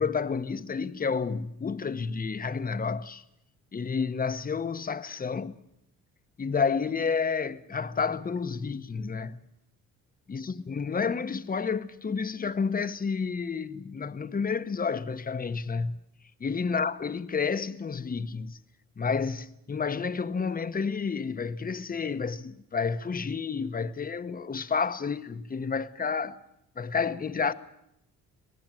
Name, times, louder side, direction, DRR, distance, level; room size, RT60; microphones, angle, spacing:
voice 1, 0.0-3.2 3.7-5.6 6.4-9.4 10.3-16.0 16.4-18.6 19.0-26.4 26.8-27.5, left 5 dB, 30° left, 1.1 m, -30 dB
26.5 x 18.5 x 7.6 m
cardioid pair, 90°, 30 cm